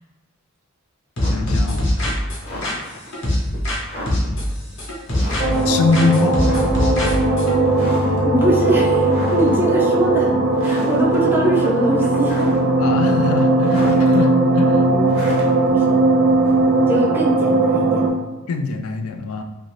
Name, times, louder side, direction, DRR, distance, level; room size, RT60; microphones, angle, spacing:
sound 1, 1.2-3.8 4.1-5.7 5.9-7.5, left 1 dB, 60° left, 0.9 m, -22 dB
snow footsteps (outside recording), 1.2-1.6 1.9-3.1 3.5-3.6 3.8-4.4 5.1-5.6 5.9-6.0 6.4-7.1 7.6-8.2 8.6-9.6 10.0-10.2 10.5-11.2 11.5-12.8 13.2-14.2 15.1-16.8, left 1 dB, 30° left, 0.8 m, -33 dB
voice 1, 1.3-1.9 5.6-6.5 12.8-14.9 18.5-19.4, left 3 dB, 85° left, 6 dB, 0.3 m, -22 dB
sound 2, 5.4-18.1, right 2 dB, 65° right, 0.6 m, -18 dB
voice 2, 8.2-10.4 10.6-12.5 14.9-15.1 15.7-16.0 16.9-18.1, right 1 dB, 10° right, -3 dB, 0.4 m, -22 dB
2.7 x 2.6 x 3.1 m, 1.2 s
head